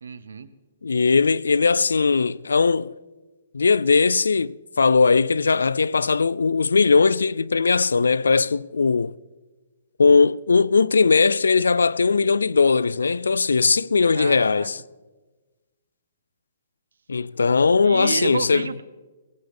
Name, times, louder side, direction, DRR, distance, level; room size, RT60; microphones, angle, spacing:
voice 1, 0.0-0.5 14.1-14.7 17.8-18.8, right 5 dB, 80° right, 0.9 m, -30 dB
voice 2, 0.8-2.9 3.5-9.1 10.0-14.8 17.1-18.7, left 4 dB, 90° left, 0.3 m, -19 dB
18.0 x 16.5 x 3.5 m
hypercardioid pair, 145°, 0 cm